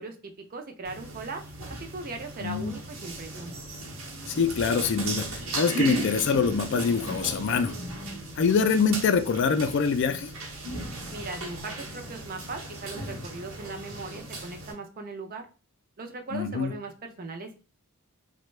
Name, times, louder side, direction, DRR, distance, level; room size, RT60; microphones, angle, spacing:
voice 1, 0.0-3.5 11.1-15.5 16.0-17.6, right 3 dB, 40° right, 0.5 m, -39 dB
sound 1, 0.8-14.7, right 2 dB, 65° right, 0.9 m, -36 dB
voice 2, 2.4-2.7 4.3-7.8 8.4-10.3 16.3-16.7, left 5 dB, 55° left, 0.3 m, -25 dB
3.3 x 2.2 x 3.1 m
head